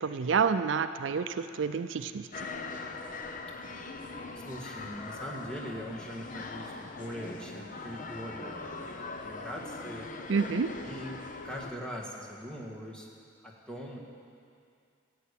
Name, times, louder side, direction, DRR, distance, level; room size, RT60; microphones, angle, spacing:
voice 1, 0.0-2.5 10.3-10.7, right 5 dB, 70° right, 11 dB, 0.4 m, -29 dB
sound 1, 2.3-11.7, left 3 dB, 45° left, 0.8 m, -41 dB
voice 2, 4.4-10.1 10.8-13.1 13.4-14.0, equal, 5° left, -3 dB, 1.8 m, -42 dB
14.0 x 8.5 x 8.4 m, 2.4 s
head